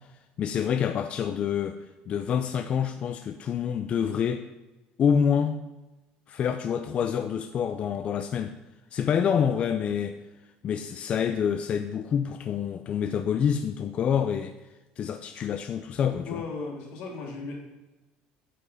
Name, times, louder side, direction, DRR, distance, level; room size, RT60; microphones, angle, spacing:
voice 1, 0.4-1.8 2.1-4.4 5.0-5.6 6.3-8.5 8.9-10.2 10.6-14.5 15.0-16.4, left 7 dB, 35° left, 8 dB, 0.5 m, -27 dB
voice 2, 16.2-17.6, left 4 dB, 75° left, -1 dB, 3.1 m, -36 dB
8.4 x 7.8 x 5.5 m, 1.1 s
cardioid pair, 145°, 3 cm